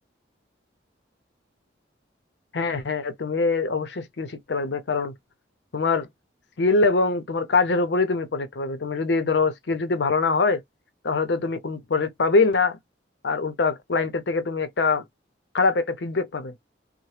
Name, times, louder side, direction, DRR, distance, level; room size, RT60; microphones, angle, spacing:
voice 1, 2.5-5.1 5.7-6.1 6.6-10.6 11.0-12.8 13.2-15.0 15.5-16.5, left 3 dB, 70° left, 0.6 m, -23 dB
2.8 x 2.0 x 3.1 m
head